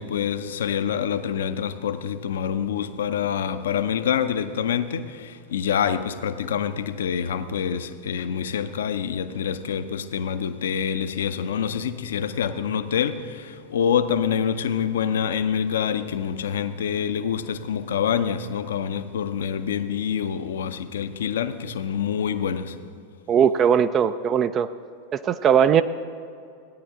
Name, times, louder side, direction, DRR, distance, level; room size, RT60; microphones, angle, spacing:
voice 1, 0.0-22.9, left 8 dB, 60° left, 0.6 m, -26 dB
voice 2, 23.3-24.7 25.1-25.8, right 8 dB, 30° right, 0.3 m, -19 dB
16.0 x 9.9 x 3.7 m
figure-of-eight pair, 90°, 0 cm